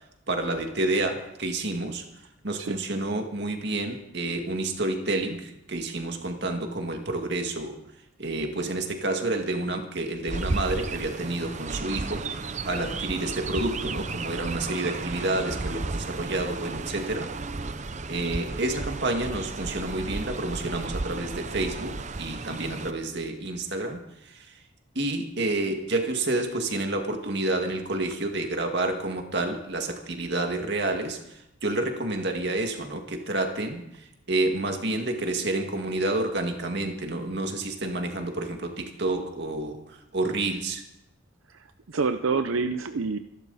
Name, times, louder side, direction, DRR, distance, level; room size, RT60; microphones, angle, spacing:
voice 1, 0.3-2.1 2.4-7.8 8.2-17.3 18.1-24.6 24.9-40.8, right 2 dB, 55° right, 4 dB, 2.2 m, -29 dB
Chirp tweet, 10.3-22.9, right 3 dB, 35° right, 0.7 m, -34 dB
voice 2, 41.5-43.2, right 4 dB, 85° right, 8 dB, 0.7 m, -27 dB
26.0 x 12.0 x 4.2 m, 0.85 s
head